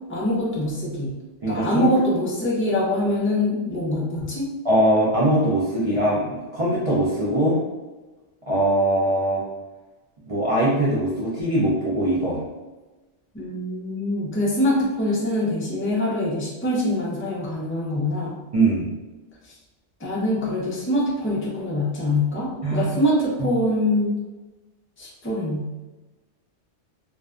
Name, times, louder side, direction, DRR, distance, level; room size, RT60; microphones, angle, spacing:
voice 1, 0.1-1.1 1.5-4.5 13.3-18.4 19.4-19.5 20.0-24.2 25.0-25.9, left 1 dB, 20° left, -6 dB, 0.3 m, -24 dB
voice 2, 1.4-1.9 4.6-7.6 8.5-9.4 10.3-12.4 18.5-18.9 22.6-22.9 23.4-23.5, right 1 dB, 55° right, -8 dB, 0.4 m, -21 dB
2.5 x 2.1 x 2.4 m, 1.2 s
omnidirectional pair, 1.2 m